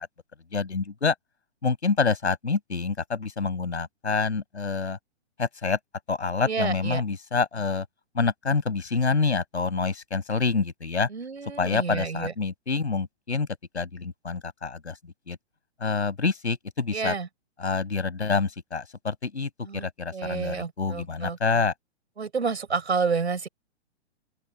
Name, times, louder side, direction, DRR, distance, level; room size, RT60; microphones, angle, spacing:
voice 1, 0.5-1.1 1.6-5.0 5.4-5.8 6.1-7.9 8.1-11.1 11.6-13.5 13.7-15.4 15.8-17.1 17.6-21.7, left 4 dB, 80° left, 5.9 m, -27 dB
voice 2, 6.5-7.0 11.1-12.3 16.9-17.3 19.6-21.6 22.2-23.5, right 5 dB, 75° right, 6.3 m, -30 dB
open air
figure-of-eight pair, 115°, 34 cm